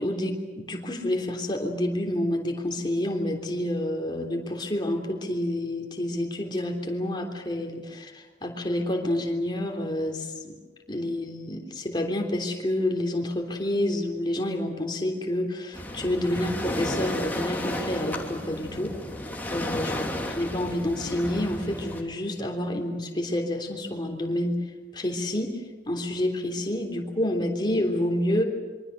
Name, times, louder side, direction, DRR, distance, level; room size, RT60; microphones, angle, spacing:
voice 1, 0.0-10.6 10.9-18.9 19.5-24.6 24.9-25.5 25.8-28.4, left 1 dB, 25° left, 2 dB, 3.4 m, -28 dB
Waves surf, 15.7-22.0, left 1 dB, 10° left, 3.0 m, -33 dB
26.5 x 24.5 x 6.8 m, 1.3 s
head